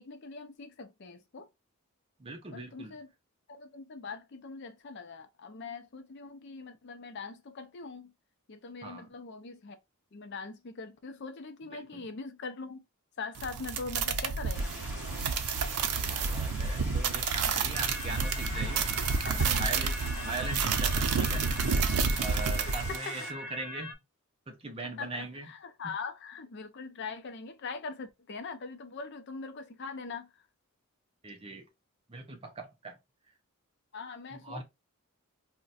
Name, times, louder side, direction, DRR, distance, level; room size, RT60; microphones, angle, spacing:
voice 1, 0.0-1.5 2.5-3.1 3.5-8.1 8.5-9.8 10.1-12.8 13.2-15.3 18.5-18.6 19.0-19.3 22.6-23.3 24.8-30.3 33.9-34.6, left 4 dB, 50° left, 0.5 m, -42 dB
voice 2, 2.2-3.0 8.8-9.1 11.7-12.1 16.1-18.9 19.2-20.0 20.2-21.5 22.2-23.9 24.5-25.5 31.2-31.7 32.1-33.0 34.3-34.6, right 3 dB, 25° right, 0.5 m, -40 dB
sound 1, 13.3-23.0, right 5 dB, 90° right, 0.5 m, -30 dB
Stream, 14.5-23.3, equal, 5° right, 0.9 m, -44 dB
sound 2, 17.7-23.9, left 1 dB, 90° left, 0.8 m, -42 dB
2.4 x 2.1 x 3.9 m
head